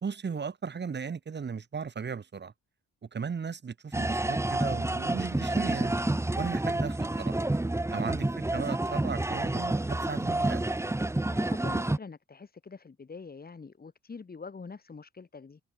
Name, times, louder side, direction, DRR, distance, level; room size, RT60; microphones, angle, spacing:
voice 1, 0.0-2.5 3.0-6.0 6.3-7.4 7.9-10.8, right 6 dB, 35° right, 2.2 m, -36 dB
sound 1, 3.9-12.0, right 2 dB, 10° right, 1.3 m, -29 dB
voice 2, 11.3-15.6, left 4 dB, 30° left, 4.2 m, -45 dB
cardioid pair, 90°, 30 cm